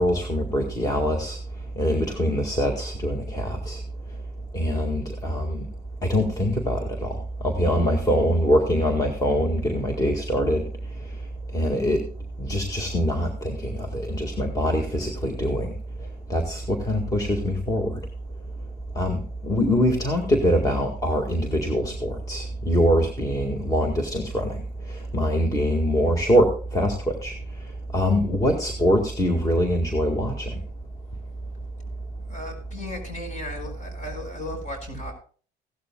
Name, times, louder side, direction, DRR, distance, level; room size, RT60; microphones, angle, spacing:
voice 1, 0.0-1.4 1.8-3.8 4.5-5.6 6.1-7.1 7.4-10.6 11.5-12.0 12.4-15.7 16.3-17.9 19.0-24.6 25.1-26.5 26.7-26.9 27.2-27.3 27.9-30.5, equal, 20° left, 2 dB, 1.9 m, -23 dB
voice 2, 32.3-35.1, left 1 dB, 45° left, 5 dB, 5.3 m, -36 dB
16.5 x 12.5 x 2.3 m, 0.41 s
cardioid pair, 110°, 17 cm